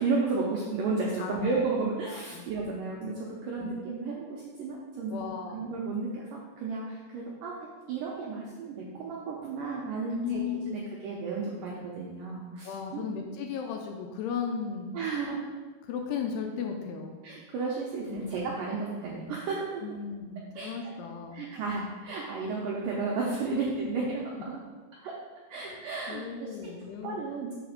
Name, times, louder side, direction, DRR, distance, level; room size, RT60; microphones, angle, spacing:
voice 1, 0.0-5.3 5.5-13.1 14.9-15.4 17.2-19.8 20.6-20.7 21.3-24.2 24.5-24.6 24.9-25.2 25.5-26.7 27.0-27.5, right 4 dB, 85° right, -3 dB, 1.9 m, -33 dB
voice 2, 1.2-1.5 2.1-2.5 3.6-3.7 5.1-5.7 10.1-10.8 12.6-14.9 15.8-17.2 18.1-18.3 19.8-21.5 23.5-23.6 25.6-25.8 26.1-27.2, left 7 dB, 85° left, 2 dB, 2.6 m, -36 dB
5.9 x 5.0 x 6.4 m, 1.3 s
omnidirectional pair, 5.0 m